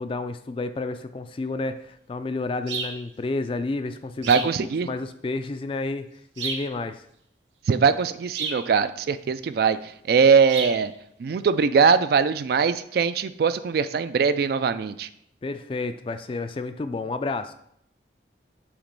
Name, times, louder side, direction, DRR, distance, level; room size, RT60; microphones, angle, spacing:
voice 1, 0.0-4.5 4.8-6.1 6.4-7.0 15.4-17.5, left 3 dB, 30° left, 10 dB, 0.3 m, -30 dB
sound 1, 2.7-3.0 4.2-4.6 6.4-6.7 8.3-8.7 10.5-10.8, right 5 dB, 80° right, 0.8 m, -31 dB
voice 2, 4.3-4.9 7.7-10.9 11.2-15.1, right 5 dB, 55° right, 12 dB, 0.3 m, -21 dB
7.1 x 3.0 x 5.2 m, 0.71 s
head